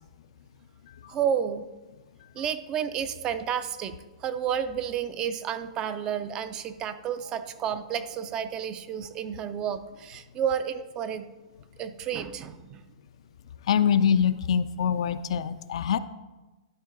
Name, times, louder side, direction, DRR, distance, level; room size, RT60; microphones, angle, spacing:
voice 1, 1.1-1.6 2.4-4.0 4.2-11.3 11.8-12.8, right 8 dB, 20° right, 11 dB, 0.3 m, -31 dB
voice 2, 13.7-16.0, left 8 dB, 60° left, 13 dB, 0.3 m, -24 dB
11.5 x 4.5 x 3.7 m, 1.2 s
hypercardioid pair, 155°, 3 cm